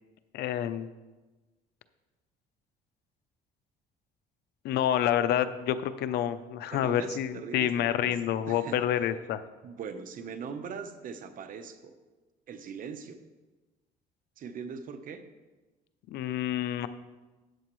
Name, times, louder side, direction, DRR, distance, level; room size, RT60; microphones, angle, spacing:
voice 1, 0.3-0.9 4.6-9.4 16.1-16.9, left 10 dB, 75° left, 12 dB, 0.6 m, -28 dB
voice 2, 6.7-8.1 8.5-9.0 9.6-11.9 12.5-13.2 14.4-15.2, right 6 dB, 55° right, 8 dB, 0.9 m, -41 dB
13.0 x 8.5 x 3.1 m, 1.2 s
cardioid pair, 110°, 17 cm